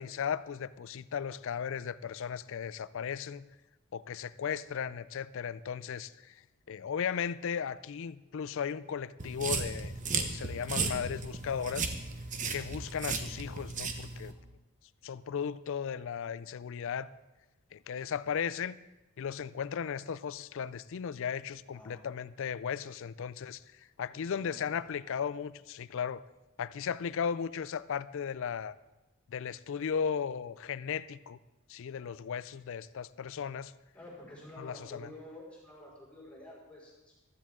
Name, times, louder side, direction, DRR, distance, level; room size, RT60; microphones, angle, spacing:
voice 1, 0.0-3.4 3.9-11.9 12.5-14.4 15.0-17.1 17.7-18.8 19.2-26.2 26.6-28.7 29.3-31.4 31.7-33.7 34.6-35.1, left 7 dB, 60° left, 17 dB, 0.4 m, -36 dB
sound 1, 9.2-14.3, right 4 dB, 35° right, 1.0 m, -35 dB
voice 2, 21.7-22.0 24.1-24.6 33.9-37.2, left 1 dB, 5° left, -7 dB, 5.1 m, -50 dB
15.0 x 13.0 x 3.7 m, 1.0 s
head